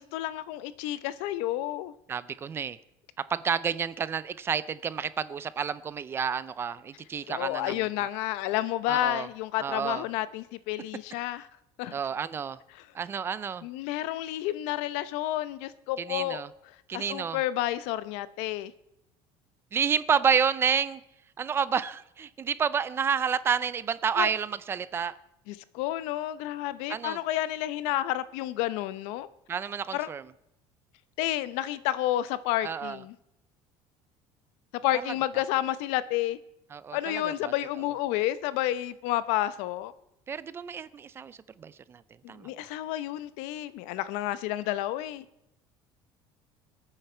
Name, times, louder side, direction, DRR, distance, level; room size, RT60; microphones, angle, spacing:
voice 1, 0.0-1.9 7.3-11.5 11.8-11.9 12.7-12.8 13.6-16.4 16.9-18.7 24.2-24.3 25.5-29.3 29.9-30.1 31.2-33.1 34.8-36.4 36.9-39.9 42.2-45.2, left 14 dB, 80° left, 0.8 m, -30 dB
voice 2, 2.1-2.8 3.2-7.9 8.9-9.3 9.6-10.0 11.9-12.6 12.9-13.6 16.0-16.5 16.9-17.4 19.7-21.0 21.4-25.1 26.9-27.2 29.5-30.2 32.6-33.0 35.0-35.1 36.7-37.5 40.3-42.0 42.3-42.5, right 7 dB, 20° right, 0.4 m, -30 dB
26.5 x 9.0 x 4.4 m
cardioid pair, 165°, 11 cm